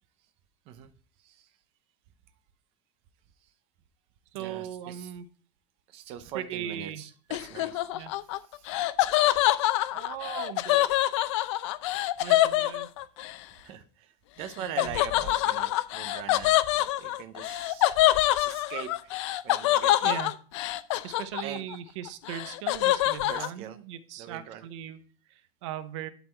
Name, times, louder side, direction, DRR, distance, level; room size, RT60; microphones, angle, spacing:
voice 1, 1.2-1.6 3.4-3.5 4.3-5.1 5.9-7.9 8.4-8.7 12.6-12.8 13.6-17.9 18.3-19.2 19.4-20.2 21.4-21.7 23.3-23.8 24.2-24.7, right 10 dB, 40° right, 8 dB, 0.7 m, -42 dB
voice 2, 4.3-5.3 6.3-7.1 7.9-8.1 9.9-10.9 12.2-12.9 14.6-15.3 20.0-20.3 21.0-25.0 25.3-26.1, right 10 dB, 65° right, 11 dB, 0.8 m, -39 dB
Laughter, 7.3-13.3 14.8-21.7 22.1-23.5, left 15 dB, 65° left, 0.5 m, -25 dB
11.0 x 4.1 x 4.3 m, 0.41 s
supercardioid pair, 175°, 16 cm